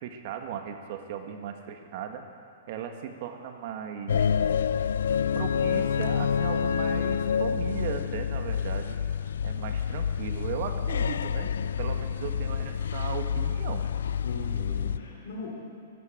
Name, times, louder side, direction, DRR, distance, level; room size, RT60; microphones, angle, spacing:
voice 1, 0.0-2.2 2.7-4.3 5.3-9.0 9.4-11.5 11.8-13.8, right 8 dB, 50° right, 5 dB, 1.6 m, -37 dB
sound 1, 4.1-15.0, left 7 dB, 85° left, 0.3 m, -28 dB
voice 2, 14.2-15.5, left 4 dB, 65° left, -5 dB, 3.4 m, -38 dB
12.5 x 12.0 x 7.8 m, 2.3 s
hypercardioid pair, 140°, 0 cm